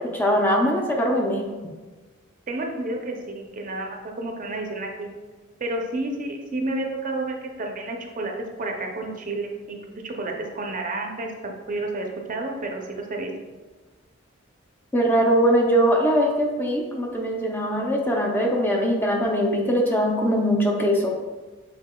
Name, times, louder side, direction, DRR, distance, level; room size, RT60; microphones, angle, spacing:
voice 1, 0.0-1.5 14.9-21.2, equal, 10° left, -1 dB, 0.4 m, -21 dB
voice 2, 2.5-5.1 5.6-8.3 8.6-13.3, right 2 dB, 40° right, 2 dB, 0.5 m, -30 dB
6.5 x 3.7 x 2.2 m, 1.3 s
head